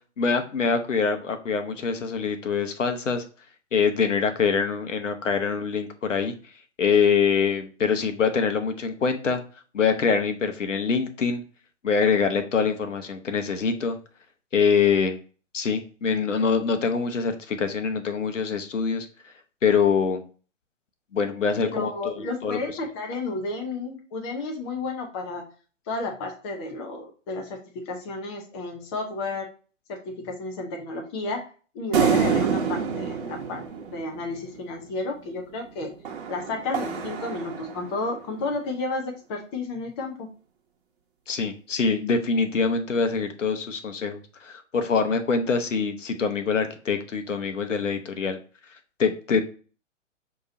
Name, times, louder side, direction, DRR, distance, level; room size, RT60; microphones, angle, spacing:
voice 1, 0.2-3.2 3.7-6.3 6.8-9.4 9.7-11.4 11.8-14.0 14.5-15.2 15.5-19.1 19.6-20.2 21.1-22.6 41.3-48.4 49.0-49.4, left 5 dB, 70° left, 7 dB, 0.9 m, -24 dB
voice 2, 21.6-25.5 25.9-29.5 29.9-31.4 31.7-33.6 33.9-35.9 36.3-40.3, left 3 dB, 20° left, 2 dB, 0.6 m, -32 dB
sound 1, 31.9-34.6 36.1-38.1, right 6 dB, 45° right, 1.0 m, -27 dB
6.3 x 2.9 x 2.6 m, 0.38 s
figure-of-eight pair, 125°, 38 cm